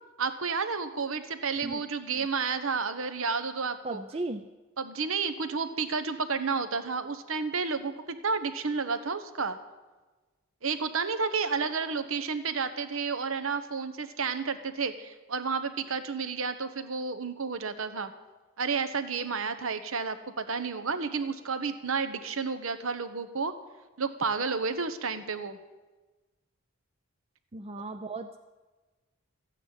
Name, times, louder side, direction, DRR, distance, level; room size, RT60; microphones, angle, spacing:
voice 1, 0.2-4.0 4.8-9.6 10.6-18.1 18.6-23.5 24.0-25.6, right 5 dB, 65° right, 10 dB, 1.0 m, -31 dB
voice 2, 3.8-4.5 27.5-28.4, right 2 dB, 25° right, 7 dB, 0.5 m, -36 dB
14.5 x 9.0 x 9.0 m, 1.2 s
head